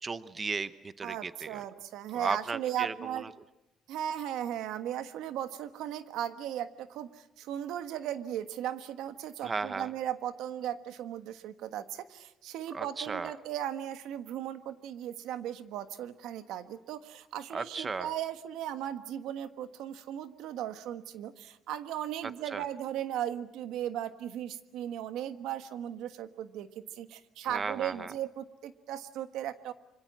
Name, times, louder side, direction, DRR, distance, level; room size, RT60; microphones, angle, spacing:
voice 1, 0.0-1.6 2.1-3.3 9.4-9.9 12.7-13.3 17.5-18.1 22.5-22.6 27.4-28.1, right 4 dB, 25° right, 13 dB, 0.9 m, -35 dB
voice 2, 1.0-3.3 3.9-29.7, right 11 dB, 85° right, 10 dB, 1.4 m, -37 dB
26.0 x 24.5 x 7.5 m, 0.92 s
cardioid pair, 145°, 0 cm